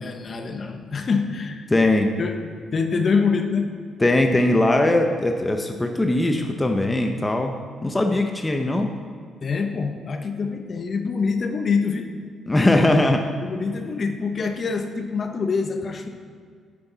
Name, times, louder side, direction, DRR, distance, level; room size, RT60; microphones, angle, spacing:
voice 1, 0.0-1.7 2.2-2.4 2.7-3.7 9.4-12.1 13.4-16.1, left 5 dB, 45° left, 6 dB, 1.0 m, -25 dB
voice 2, 1.7-2.1 4.0-7.5 7.8-8.9 12.5-13.2, left 1 dB, 15° left, 4 dB, 0.8 m, -20 dB
10.0 x 9.7 x 4.0 m, 2.1 s
cardioid pair, 90°, 0 cm